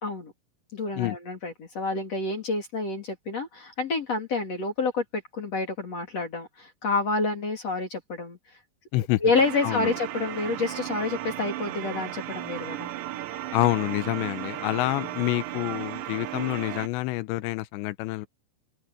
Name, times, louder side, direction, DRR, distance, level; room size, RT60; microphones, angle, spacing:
voice 1, 0.0-0.3 0.7-8.4 9.0-12.9, left 3 dB, 40° left, 3.5 m, -28 dB
sound 1, 9.3-16.9, right 13 dB, 85° right, 3.7 m, -35 dB
voice 2, 13.5-18.3, left 19 dB, 85° left, 3.0 m, -27 dB
open air
omnidirectional pair, 5.1 m